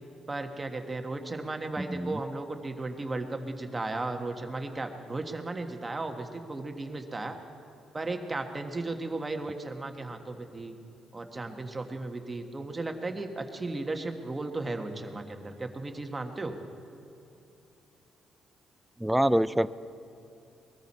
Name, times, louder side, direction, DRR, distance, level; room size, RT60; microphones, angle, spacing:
voice 1, 0.3-7.4 7.9-10.7 11.1-16.5, right 2 dB, 25° right, 5 dB, 1.4 m, -35 dB
voice 2, 1.8-2.2 19.0-19.7, right 1 dB, 5° right, 15 dB, 0.4 m, -25 dB
21.5 x 14.0 x 4.3 m, 2.9 s
cardioid pair, 90°, 0 cm